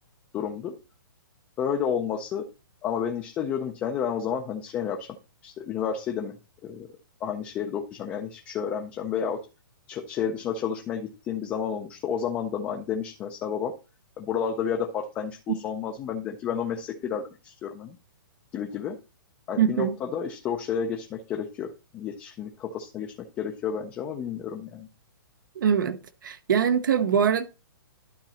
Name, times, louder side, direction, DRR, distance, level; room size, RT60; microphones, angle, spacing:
voice 1, 0.3-0.7 1.6-2.5 2.8-5.2 5.4-6.3 6.6-6.9 7.2-9.5 9.9-13.8 14.2-17.9 18.5-19.0 19.5-24.9, left 7 dB, 15° left, 0.5 m, -31 dB
voice 2, 19.6-19.9 25.6-26.0 26.2-27.5, right 8 dB, 65° right, 0.8 m, -22 dB
11.5 x 4.0 x 4.1 m
hypercardioid pair, 170°, 12 cm